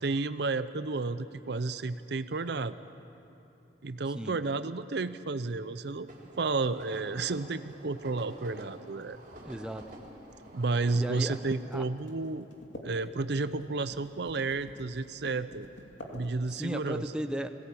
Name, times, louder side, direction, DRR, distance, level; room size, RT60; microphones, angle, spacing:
voice 1, 0.0-2.8 3.8-6.1 6.4-9.2 10.5-12.5 12.8-15.7 16.1-17.0, right 3 dB, 65° right, 13 dB, 0.6 m, -32 dB
sound 1, 5.8-16.8, left 1 dB, 90° left, 2.6 m, -50 dB
sound 2, 6.1-11.5, right 1 dB, 45° right, 3.6 m, -49 dB
voice 2, 9.4-9.9 10.9-11.4 11.7-11.9 16.5-17.5, equal, 5° right, 7 dB, 0.7 m, -35 dB
21.5 x 17.5 x 8.5 m, 2.9 s
head